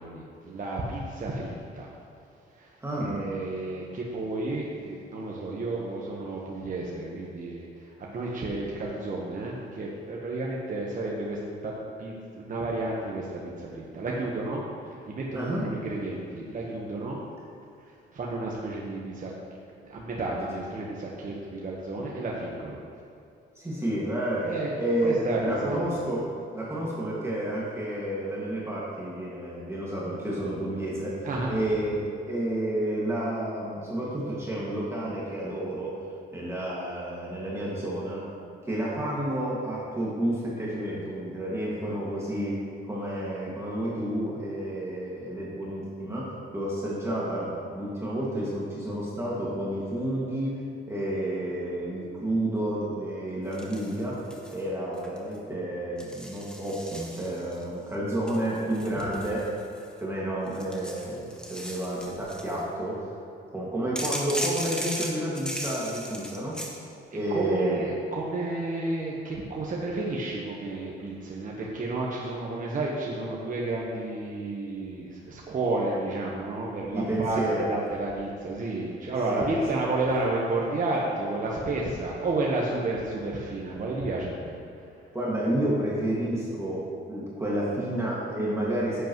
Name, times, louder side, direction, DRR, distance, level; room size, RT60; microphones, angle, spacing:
voice 1, 0.0-1.9 2.6-11.7 12.0-17.2 18.1-19.3 19.9-22.8 24.4-24.8 25.0-25.8 31.2-31.5 67.3-84.6, right 2 dB, 40° right, -3 dB, 1.2 m, -31 dB
voice 2, 2.8-3.2 15.3-15.7 23.6-26.3 26.5-31.2 31.5-36.0 36.3-38.2 38.7-42.6 42.9-50.6 50.9-54.3 54.5-59.6 60.0-63.1 63.5-66.6 67.1-67.8 76.9-77.7 79.3-79.5 85.1-89.0, right 1 dB, 15° right, -7 dB, 2.0 m, -30 dB
sound 1, 53.5-54.6 54.9-55.4 56.0-57.6 58.3-60.0 60.5-62.6 64.0-66.8, equal, 5° left, 1.2 m, -37 dB
10.0 x 8.1 x 3.1 m, 2.6 s
cardioid pair, 90°, 20 cm